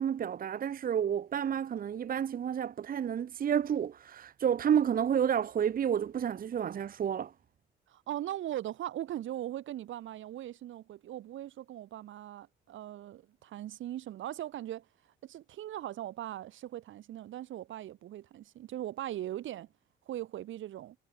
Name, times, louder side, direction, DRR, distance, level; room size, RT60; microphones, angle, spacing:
voice 1, 0.0-7.3, right 8 dB, 45° right, 0.8 m, -30 dB
voice 2, 7.9-14.9 15.2-19.7 20.1-21.0, right 12 dB, 75° right, 2.4 m, -40 dB
cardioid pair, 90°, 20 cm